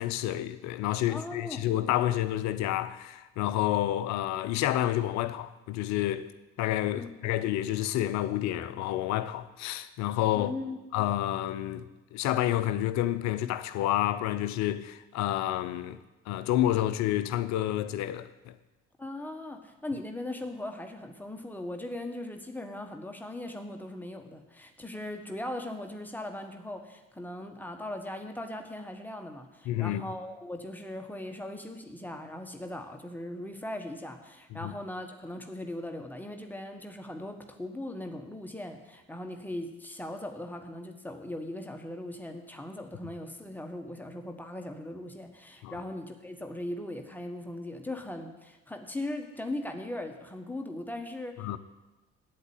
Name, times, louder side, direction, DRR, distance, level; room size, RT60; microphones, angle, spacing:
voice 1, 0.0-6.3 6.6-10.5 10.9-16.0 16.3-18.5 29.7-30.0 34.5-34.7 45.6-45.7 51.4-51.6, left 13 dB, 50° left, 0.7 m, -29 dB
voice 2, 1.1-1.7 6.9-7.3 10.3-10.8 19.0-51.6, left 1 dB, 5° left, 1.5 m, -39 dB
8.4 x 8.1 x 9.1 m
figure-of-eight pair, 50°, 36 cm